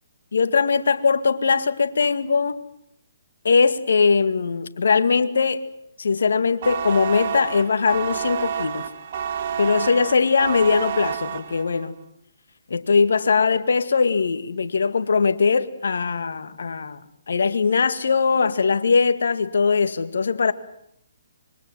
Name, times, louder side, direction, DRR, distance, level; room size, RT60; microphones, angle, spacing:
voice 1, 0.3-2.6 3.4-5.6 6.0-8.9 9.6-11.9 12.7-17.0 17.3-20.5, left 5 dB, 75° left, 1.9 m, -20 dB
sound 1, 6.6-11.9, right 8 dB, 50° right, 2.4 m, -29 dB
25.5 x 23.0 x 7.7 m
hypercardioid pair, 140°, 0 cm